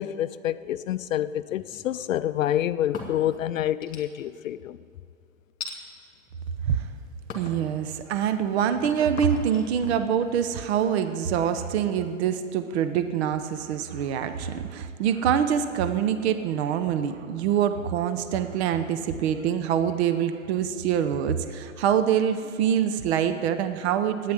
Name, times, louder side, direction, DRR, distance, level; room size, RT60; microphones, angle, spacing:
voice 1, 0.0-4.8, left 11 dB, 70° left, 0.5 m, -27 dB
sound 1, 1.5-2.2 2.7-3.4 3.8-4.4 5.6-5.8 6.5-6.9 7.3-7.6 8.1-11.8, left 5 dB, 20° left, 2.4 m, -41 dB
voice 2, 7.3-24.3, right 8 dB, 50° right, 0.8 m, -25 dB
10.5 x 9.5 x 9.8 m
hypercardioid pair, 115°, 41 cm